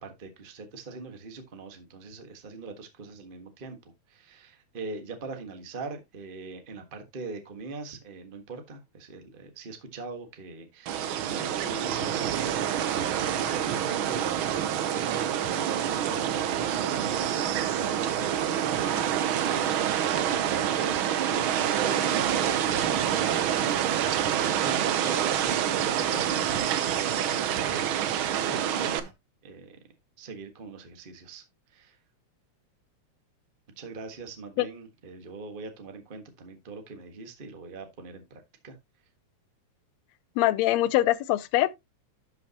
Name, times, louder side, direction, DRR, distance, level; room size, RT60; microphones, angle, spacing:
voice 1, 0.0-3.8 4.1-20.2 20.6-23.1 23.4-29.1 29.4-29.8 30.2-32.0 33.8-38.8, right 4 dB, 35° right, 0.8 m, -42 dB
sound 1, 10.9-29.0, right 10 dB, 80° right, 1.1 m, -27 dB
sound 2, 11.3-29.1, right 8 dB, 60° right, 2.1 m, -47 dB
voice 2, 40.4-41.8, left 15 dB, 75° left, 1.8 m, -23 dB
11.5 x 6.0 x 2.9 m
omnidirectional pair, 3.4 m